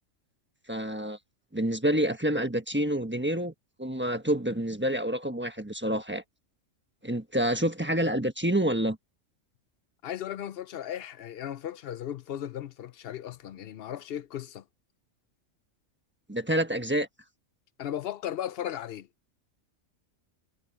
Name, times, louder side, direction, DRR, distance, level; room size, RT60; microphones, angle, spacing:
voice 1, 0.7-1.2 1.5-3.5 3.8-6.2 7.0-9.0 16.3-17.1, right 1 dB, 10° right, 1.2 m, -28 dB
voice 2, 10.0-14.6 17.8-19.1, left 10 dB, 60° left, 0.7 m, -36 dB
omnidirectional pair, 1.4 m